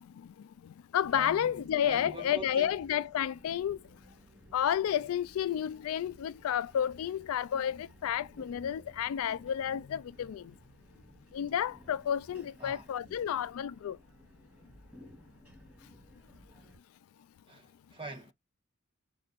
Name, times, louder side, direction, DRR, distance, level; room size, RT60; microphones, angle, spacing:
voice 1, 0.0-3.8 4.5-10.5 11.3-14.0, left 9 dB, 80° left, 0.3 m, -31 dB
sound 1, 1.0-16.8, equal, 5° right, 3.4 m, -57 dB
voice 2, 1.1-1.5 1.8-2.7 12.6-12.9 17.5-18.3, right 2 dB, 25° right, 1.4 m, -44 dB
5.3 x 2.7 x 2.5 m
head